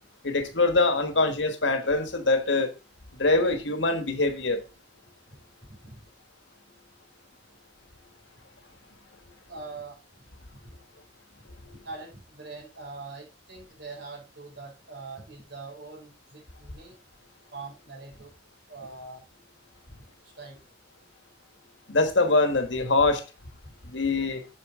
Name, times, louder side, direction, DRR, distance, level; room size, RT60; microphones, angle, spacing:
voice 1, 0.2-2.7 3.2-4.6 11.6-11.8 21.9-23.2 23.9-24.4, left 3 dB, 80° left, 1.5 m, -24 dB
voice 2, 5.7-6.1 9.5-10.0 10.5-10.6 11.4-11.5 11.8-16.9 17.5-18.3 18.7-19.2 19.9-20.6, right 3 dB, 70° right, 4.2 m, -43 dB
8.2 x 6.6 x 3.7 m
head